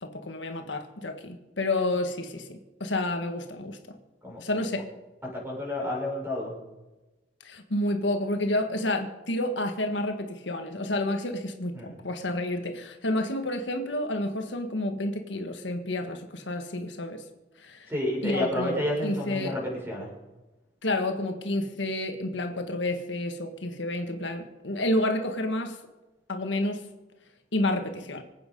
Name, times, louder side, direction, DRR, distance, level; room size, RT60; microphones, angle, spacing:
voice 1, 0.0-3.8 4.4-4.8 7.4-17.2 17.6-17.9 18.2-19.5 20.8-25.8 26.3-26.9 27.5-28.2, left 1 dB, 75° left, 5 dB, 1.6 m, -30 dB
voice 2, 4.2-4.6 5.3-6.5 11.7-12.0 17.9-20.1, left 1 dB, 15° right, -2 dB, 6.1 m, -30 dB
25.0 x 9.0 x 5.4 m, 1.1 s
head